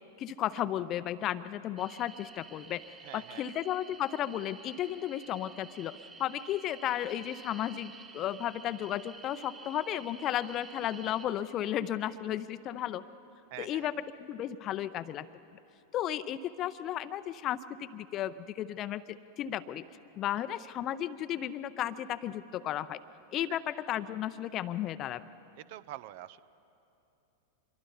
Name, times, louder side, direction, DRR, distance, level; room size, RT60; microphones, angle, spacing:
voice 1, 0.2-2.8 3.1-13.0 13.6-13.9 14.2-15.3 15.9-19.9 20.2-23.0 23.3-25.2, left 11 dB, 35° left, 15 dB, 0.6 m, -34 dB
sound 1, 1.8-11.3, right 3 dB, 20° right, 1.8 m, -51 dB
voice 2, 3.0-3.4 13.5-13.9 20.4-20.5 23.5-23.6 25.6-26.4, right 14 dB, 50° right, 18 dB, 0.6 m, -45 dB
26.0 x 22.5 x 5.4 m, 2.8 s
figure-of-eight pair, 90°, 0 cm